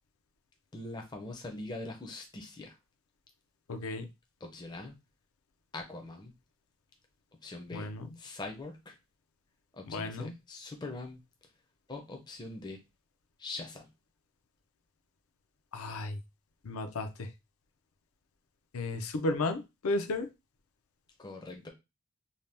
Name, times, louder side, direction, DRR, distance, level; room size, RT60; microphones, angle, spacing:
voice 1, 0.7-2.8 4.4-4.9 5.7-6.3 7.4-7.9 8.2-9.0 9.7-11.2 11.9-12.8 13.4-13.9 21.2-21.7, left 2 dB, 20° left, 0.4 m, -42 dB
voice 2, 3.7-4.0 7.7-8.1 9.9-10.3 15.7-16.2 16.6-17.3 18.7-20.3, left 2 dB, 85° left, 0.5 m, -33 dB
2.7 x 2.1 x 3.3 m
head